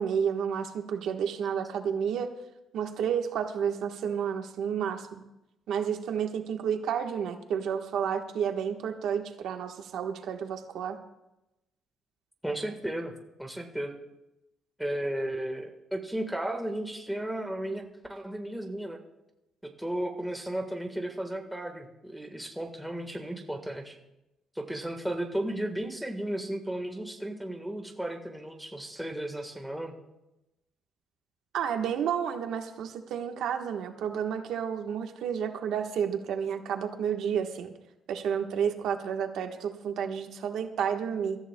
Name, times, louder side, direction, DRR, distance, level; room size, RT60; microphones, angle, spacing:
voice 1, 0.0-2.3 2.7-5.2 5.7-11.0 31.5-37.7 38.1-41.4, right 8 dB, 70° right, 4 dB, 1.2 m, -31 dB
voice 2, 12.4-13.1 13.4-13.9 14.8-17.8 18.1-19.0 19.6-23.9 24.5-29.9, right 1 dB, ahead, 2 dB, 1.4 m, -34 dB
25.0 x 14.0 x 2.3 m, 0.92 s
cardioid pair, 155°, 0 cm